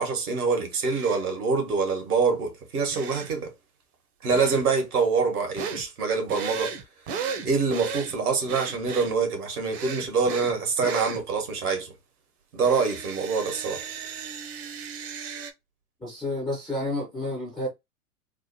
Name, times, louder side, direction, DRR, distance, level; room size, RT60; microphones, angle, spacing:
voice 1, 0.0-3.5 4.2-6.7 7.4-11.9 12.5-13.9, right 4 dB, 75° right, 1.6 m, -25 dB
sound 1, 0.9-1.2 2.9-3.3 4.3-4.6 5.6-5.8 6.3-8.1 8.5-9.1 9.7-10.5 10.8-11.2 12.6-15.5, right 6 dB, 45° right, 0.7 m, -35 dB
voice 2, 16.0-17.7, left 1 dB, ahead, 0.3 m, -30 dB
3.4 x 2.2 x 2.7 m
hypercardioid pair, 110°, 45 cm